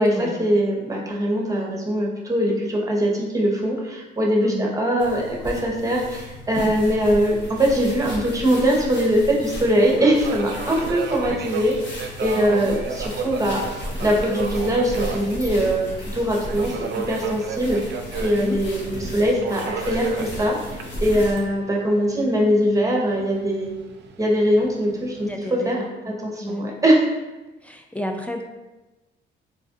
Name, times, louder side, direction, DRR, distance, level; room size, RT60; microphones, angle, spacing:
voice 1, 0.0-13.6 14.0-16.7 17.1-17.8 18.2-23.7 24.2-25.8 26.0-27.0, equal, 15° right, -2 dB, 0.8 m, -22 dB
voice 2, 4.4-4.7 12.3-13.1 18.2-18.6 25.2-26.8 27.6-28.4, left 1 dB, 5° left, 3 dB, 0.3 m, -33 dB
sound 1, 5.0-21.5, left 1 dB, 65° left, 1.0 m, -34 dB
Subway metro underground, 6.9-25.4, right 6 dB, 60° right, 0.4 m, -35 dB
4.1 x 2.4 x 2.5 m, 1.1 s
cardioid pair, 90°, 20 cm